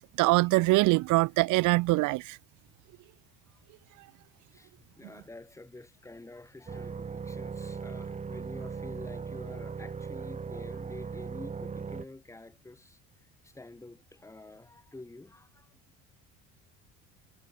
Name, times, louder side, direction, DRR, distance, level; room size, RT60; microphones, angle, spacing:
voice 1, 0.0-2.4, right 22 dB, 70° right, 1.0 m, -24 dB
voice 2, 0.8-1.6 4.5-4.7 5.0-13.0 13.4-15.7, left 2 dB, 10° left, 5.5 m, -49 dB
sound 1, 6.7-12.1, right 5 dB, 20° right, 3.1 m, -38 dB
cardioid pair, 145°, 31 cm